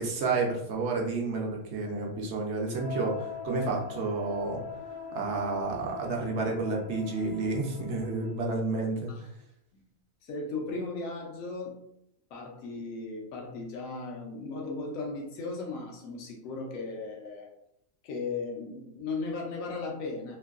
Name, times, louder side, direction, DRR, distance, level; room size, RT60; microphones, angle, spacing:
voice 1, 0.0-4.6 5.1-9.1, right 3 dB, 65° right, 0 dB, 0.8 m, -30 dB
sound 1, 2.7-8.6, left 6 dB, 55° left, 0.7 m, -42 dB
voice 2, 10.2-11.7 12.3-17.5 18.0-20.4, left 3 dB, 85° left, 0 dB, 1.1 m, -36 dB
3.0 x 2.6 x 2.4 m, 0.74 s
omnidirectional pair, 1.4 m